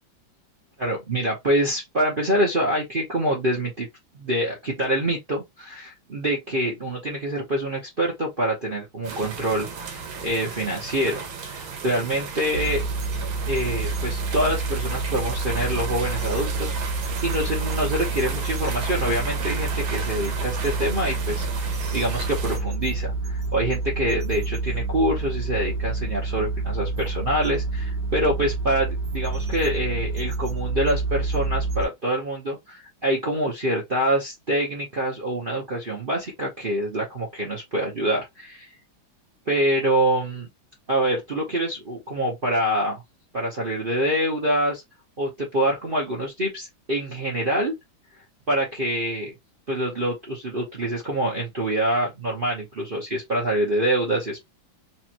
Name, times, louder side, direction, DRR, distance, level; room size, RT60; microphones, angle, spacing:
voice 1, 0.8-3.9 4.1-12.8 13.5-38.7 39.5-40.5 40.9-43.0 43.3-44.8 45.2-47.7 48.5-49.3 49.7-54.4, right 1 dB, 40° right, 0.9 m, -26 dB
sound 1, 9.0-22.6, right 5 dB, 85° right, 1.8 m, -35 dB
sound 2, 12.5-31.8, right 3 dB, 60° right, 1.9 m, -28 dB
4.4 x 2.5 x 2.9 m
omnidirectional pair, 2.2 m